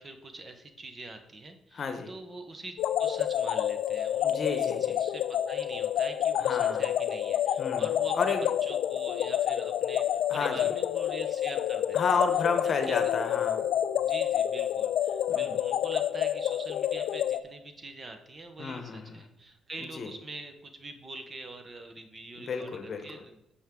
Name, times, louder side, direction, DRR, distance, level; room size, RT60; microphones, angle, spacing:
voice 1, 0.0-8.3 8.6-12.2 12.9-13.1 14.0-22.7 23.0-23.3, right 2 dB, 30° right, 6 dB, 1.2 m, -44 dB
voice 2, 1.7-2.1 4.2-5.0 6.4-6.9 7.6-8.5 10.3-10.7 11.9-13.7 15.3-15.6 18.6-19.3 19.8-20.1 22.4-23.2, left 4 dB, 50° left, 7 dB, 1.1 m, -32 dB
sound 1, 2.8-17.4, left 11 dB, 80° left, 0.4 m, -28 dB
9.0 x 6.3 x 3.8 m, 0.81 s
cardioid pair, 90°, 0 cm